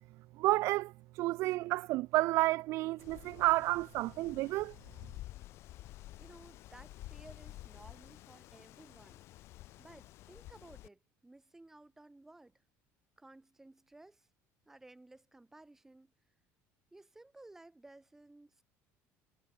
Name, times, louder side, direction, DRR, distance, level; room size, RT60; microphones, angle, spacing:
voice 1, 0.4-4.7, right 19 dB, 60° right, 0.7 m, -31 dB
Wind, 3.0-10.9, left 16 dB, 50° left, 1.8 m, -51 dB
voice 2, 6.2-9.3 9.8-12.6 13.2-14.3 14.7-16.1 16.9-18.6, right 2 dB, 5° right, 4.1 m, -57 dB
cardioid pair, 160°, 6 cm